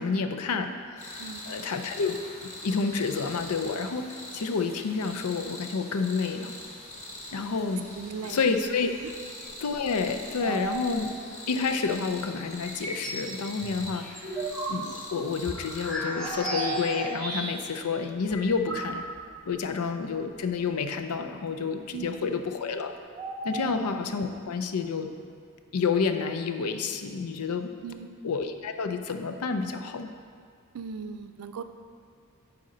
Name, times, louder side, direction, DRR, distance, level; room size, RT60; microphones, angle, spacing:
voice 1, 0.0-2.2 2.6-4.1 4.3-6.6 7.3-7.8 8.2-8.9 9.6-11.2 11.5-14.1 14.7-19.0 19.5-22.9 23.4-25.1 25.7-27.7 28.2-30.1, left 5 dB, 90° left, 7 dB, 0.5 m, -29 dB
sound 1, 1.0-15.9, left 1 dB, 30° left, 1.1 m, -43 dB
voice 2, 1.2-1.6 7.9-8.4 9.0-9.1 10.4-10.7 21.9-22.2 23.6-23.8 27.8-28.1 30.7-31.6, right 6 dB, 85° right, 9 dB, 0.4 m, -39 dB
sound 2, 8.6-8.7 9.4-11.4 12.1-12.2 13.8-13.9 16.2-17.4 23.2-24.0, right 2 dB, 20° right, 0.5 m, -36 dB
sound 3, 12.6-13.2 13.6-17.8 18.0-18.1 18.3-19.3, right 1 dB, ahead, 1.6 m, -35 dB
10.5 x 4.3 x 3.9 m, 2.3 s
head